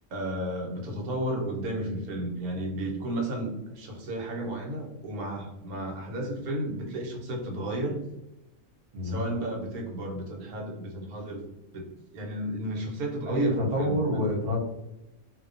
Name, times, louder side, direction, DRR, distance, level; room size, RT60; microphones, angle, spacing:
voice 1, 0.1-8.0 9.0-11.4 11.7-11.8 12.1-14.3, right 1 dB, 85° right, 0 dB, 1.2 m, -33 dB
voice 2, 8.9-9.3 13.3-14.6, equal, 45° right, -2 dB, 0.5 m, -27 dB
2.7 x 2.1 x 2.4 m, 0.91 s
omnidirectional pair, 1.5 m